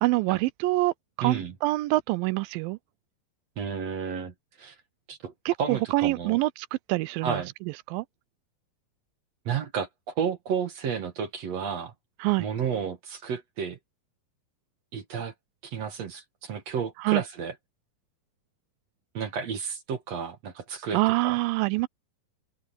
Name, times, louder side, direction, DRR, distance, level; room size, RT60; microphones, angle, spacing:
voice 1, 0.0-2.8 5.5-7.4 7.9-8.1 12.2-12.5 17.0-17.2 20.9-21.9, right 20 dB, 85° right, 2.3 m, -25 dB
voice 2, 1.2-1.5 3.6-4.8 5.1-5.3 5.6-6.4 7.2-7.5 9.5-11.9 12.4-13.8 14.9-15.3 15.6-17.5 19.1-21.4, right 7 dB, 55° right, 2.5 m, -32 dB
open air
omnidirectional pair, 4.1 m